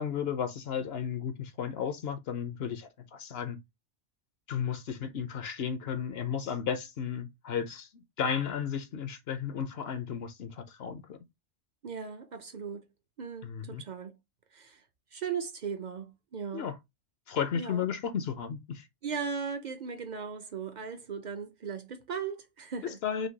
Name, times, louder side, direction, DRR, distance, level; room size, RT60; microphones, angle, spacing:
voice 1, 0.0-3.6 4.5-7.9 8.2-11.2 13.4-13.8 16.5-16.7 17.3-18.8 23.0-23.3, left 7 dB, 65° left, 0.8 m, -34 dB
voice 2, 11.8-12.9 13.2-14.1 14.5-14.8 15.1-16.7 17.5-17.9 19.0-23.0, right 6 dB, 50° right, 0.6 m, -37 dB
5.1 x 2.2 x 3.9 m
omnidirectional pair, 1.2 m